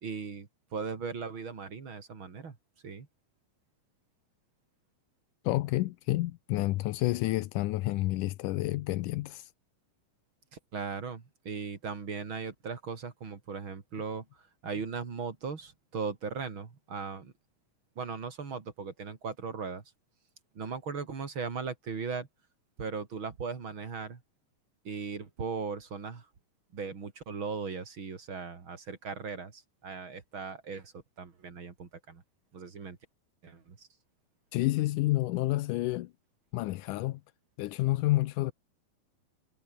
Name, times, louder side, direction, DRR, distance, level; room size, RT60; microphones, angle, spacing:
voice 1, 0.0-2.6 2.8-3.1 10.5-14.2 14.6-17.3 18.0-19.8 20.5-22.3 22.8-24.2 24.8-26.2 26.7-30.9 31.2-32.2 32.5-33.0 33.4-33.9, right 5 dB, 35° right, 3.2 m, -38 dB
voice 2, 5.4-9.5 34.5-36.1 36.5-37.2 37.6-38.5, left 17 dB, 75° left, 2.1 m, -29 dB
omnidirectional pair, 4.1 m